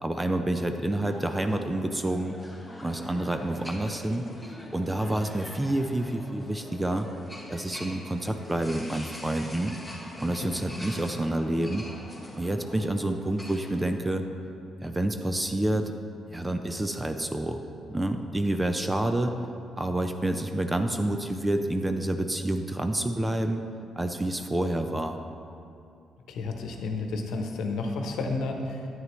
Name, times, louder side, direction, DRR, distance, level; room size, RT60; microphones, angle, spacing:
voice 1, 0.0-2.4 2.8-4.3 4.7-7.1 7.5-9.7 10.2-11.9 12.4-14.3 14.8-15.9 16.3-17.6 17.9-19.3 19.8-23.6 24.0-25.2, right 1 dB, 15° right, 6 dB, 0.5 m, -28 dB
sound 1, 1.1-13.8, left 1 dB, 5° left, 1.2 m, -44 dB
voice 2, 26.3-28.9, left 3 dB, 80° left, 3 dB, 1.0 m, -31 dB
9.8 x 9.1 x 3.2 m, 2.6 s
cardioid pair, 90°, 0 cm